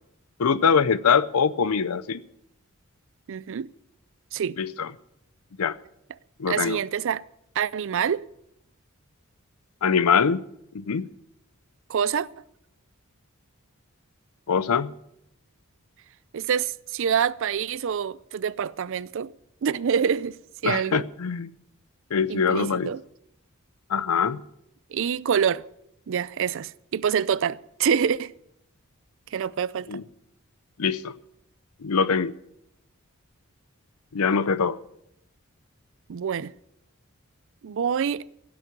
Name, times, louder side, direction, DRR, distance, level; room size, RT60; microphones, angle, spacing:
voice 1, 0.4-2.2 4.6-4.9 5.6-5.8 6.4-6.8 9.8-10.4 10.7-11.1 14.5-14.9 20.6-21.5 22.1-22.9 23.9-24.4 29.9-30.0 30.8-31.1 31.8-32.3 34.1-34.8, left 6 dB, 90° left, 0.6 m, -23 dB
voice 2, 3.3-3.7 4.3-4.6 6.5-7.2 7.6-8.2 11.9-12.3 16.3-19.3 19.6-20.4 20.6-21.0 22.3-23.0 24.9-25.6 26.1-28.3 29.3-30.0 36.1-36.5 37.6-38.2, right 7 dB, 60° right, 0.4 m, -26 dB
16.5 x 6.2 x 9.3 m
head